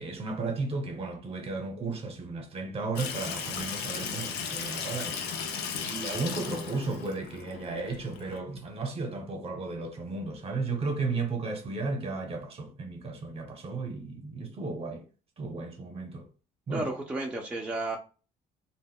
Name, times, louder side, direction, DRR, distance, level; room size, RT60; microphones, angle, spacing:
voice 1, 0.0-5.2 5.8-15.1 15.4-16.3 16.7-16.9, right 3 dB, 35° right, 0.8 m, -34 dB
Water tap faucet / Sink (filling or washing), 3.0-8.4, left 6 dB, 80° left, 0.6 m, -36 dB
voice 2, 16.7-18.0, right 2 dB, 5° right, 0.4 m, -32 dB
2.1 x 2.0 x 3.5 m
cardioid pair, 110°, 17 cm